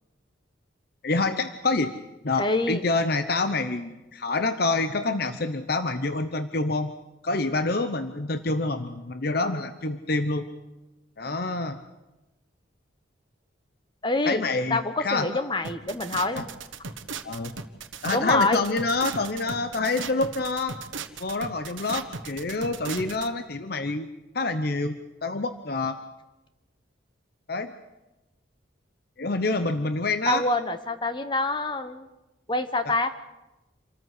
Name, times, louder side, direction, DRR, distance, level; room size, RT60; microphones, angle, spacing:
voice 1, 1.0-1.9 2.2-6.9 7.2-10.5 11.2-11.8 14.3-15.3 16.3-16.4 17.2-17.5 18.0-20.8 21.2-24.1 24.3-26.0 27.5-27.7 29.2-30.4 32.8-32.9, left 3 dB, 50° left, 10 dB, 0.8 m, -27 dB
voice 2, 2.4-2.8 14.0-14.4 14.7-16.6 18.1-18.6 30.3-32.1 32.5-33.1, left 2 dB, 25° left, 10 dB, 1.0 m, -26 dB
sound 1, 15.6-23.3, right 5 dB, 80° right, 1.3 m, -37 dB
27.0 x 14.0 x 8.3 m, 1.0 s
head